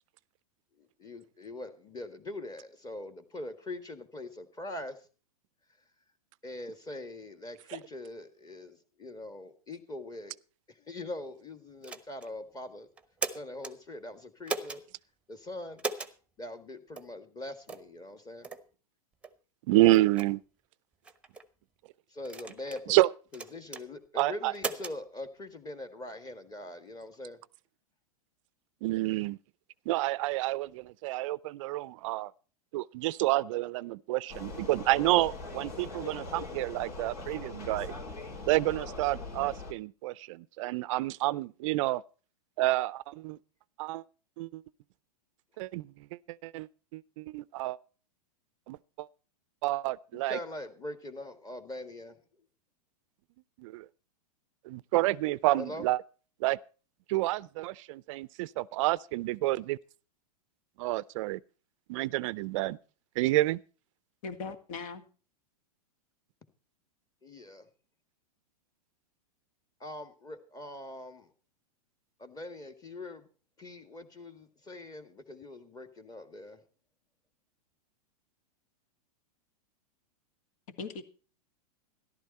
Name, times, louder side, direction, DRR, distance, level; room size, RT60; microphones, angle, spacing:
voice 1, 0.8-5.0 6.4-10.3 10.7-12.9 13.3-14.8 15.3-15.8 16.4-18.5 22.1-23.0 23.3-27.4 50.1-52.4 55.6-55.9 67.2-67.7 69.8-71.3 72.2-73.3 73.6-76.6, left 2 dB, 20° left, 1.8 m, -42 dB
sound 1, 11.8-12.3 13.0-13.7 14.5-14.8 15.8-16.1 17.0-17.1 17.7-17.9 18.4-18.6 19.2-19.3 19.9-20.3 21.0-21.4 22.2-22.8 23.3-23.8 24.5-25.0, right 3 dB, 5° right, 1.0 m, -37 dB
voice 2, 19.7-20.4 22.9-23.1 24.2-24.5 28.8-29.4 29.9-32.3 32.7-37.9 38.5-42.0 42.6-43.4 43.8-44.0 44.4-44.6 45.6-45.9 46.3-47.8 48.7-49.1 49.6-50.4 53.6-53.9 54.7-56.0 56.4-56.6 57.1-59.8 60.8-61.4 61.9-62.8 63.2-63.6, right 18 dB, 50° right, 0.5 m, -29 dB
Vehicle, 34.3-39.7, left 3 dB, 75° left, 4.5 m, -41 dB
voice 3, 64.2-65.1 80.7-81.0, left 4 dB, 60° left, 2.0 m, -39 dB
13.5 x 12.0 x 4.2 m
hypercardioid pair, 120°, 20 cm